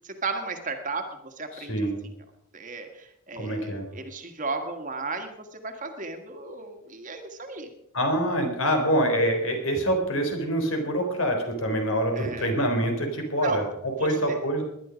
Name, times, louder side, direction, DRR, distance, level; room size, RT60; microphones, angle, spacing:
voice 1, 0.0-1.9 2.5-7.7 12.1-12.5 13.4-13.6 14.0-14.4, right 3 dB, 35° right, 6 dB, 1.8 m, -35 dB
voice 2, 1.5-2.0 3.3-3.8 7.9-13.6 14.0-14.6, equal, 70° left, 4 dB, 3.8 m, -25 dB
19.5 x 11.0 x 5.2 m, 0.81 s
head